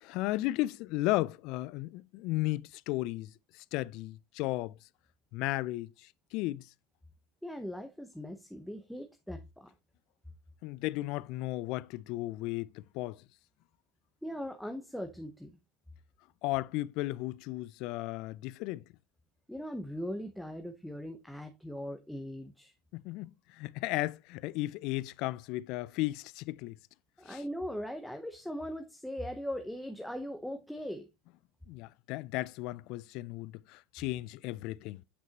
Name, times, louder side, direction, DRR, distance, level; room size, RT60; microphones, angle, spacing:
voice 1, 0.0-4.8 5.3-6.7 10.6-13.2 16.4-18.8 22.9-26.8 27.3-27.4 31.7-35.0, left 18 dB, 60° left, 0.3 m, -35 dB
voice 2, 7.4-9.7 14.2-15.6 19.5-22.7 27.2-31.1, equal, ahead, 0.8 m, -40 dB
8.0 x 5.9 x 2.9 m
hypercardioid pair, 90°, 0 cm